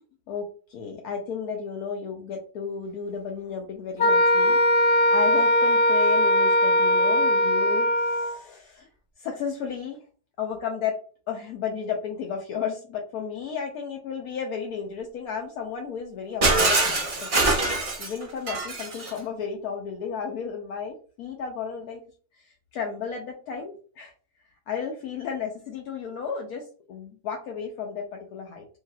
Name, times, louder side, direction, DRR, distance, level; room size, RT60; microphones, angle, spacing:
voice 1, 0.3-4.6 5.1-8.9 9.2-10.0 10.4-11.0 11.3-17.0 17.3-17.5 18.0-22.0 22.7-24.1 24.7-28.7, left 6 dB, 75° left, 1 dB, 1.0 m, -33 dB
Wind instrument woodwind instrument, 4.0-8.4, equal, 50° left, 0.7 m, -20 dB
Shatter, 16.4-19.2, right 2 dB, 55° right, 0.4 m, -23 dB
3.2 x 2.8 x 2.2 m, 0.40 s
omnidirectional pair, 1.7 m